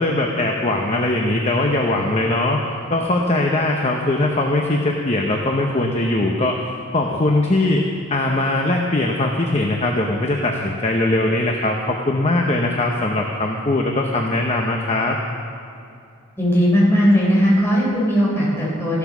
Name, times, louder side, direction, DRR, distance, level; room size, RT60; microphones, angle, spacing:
voice 1, 0.0-2.6 2.9-6.6 6.9-15.2, left 2 dB, 30° left, 1 dB, 0.9 m, -20 dB
voice 2, 16.4-19.0, equal, 10° left, -5 dB, 3.9 m, -17 dB
15.5 x 12.0 x 6.1 m, 2.5 s
head